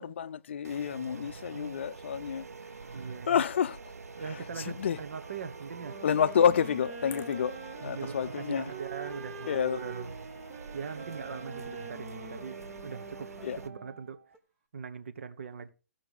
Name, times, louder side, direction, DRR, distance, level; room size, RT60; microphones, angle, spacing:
voice 1, 0.0-2.5 3.3-3.8 4.3-5.0 6.0-7.5 7.8-8.7 9.5-9.8 13.4-13.6, left 8 dB, 50° left, 0.6 m, -29 dB
sound 1, 0.6-13.7, right 4 dB, 90° right, 1.0 m, -46 dB
voice 2, 1.5-1.8 2.9-3.4 4.2-6.0 7.8-10.1 10.7-13.3 13.6-14.2 14.7-15.7, right 6 dB, 55° right, 1.1 m, -41 dB
sound 2, 5.2-14.4, right 3 dB, 5° right, 0.9 m, -57 dB
sound 3, 5.8-14.0, right 4 dB, 25° right, 1.9 m, -44 dB
15.5 x 5.9 x 4.9 m
hypercardioid pair, 165°, 8 cm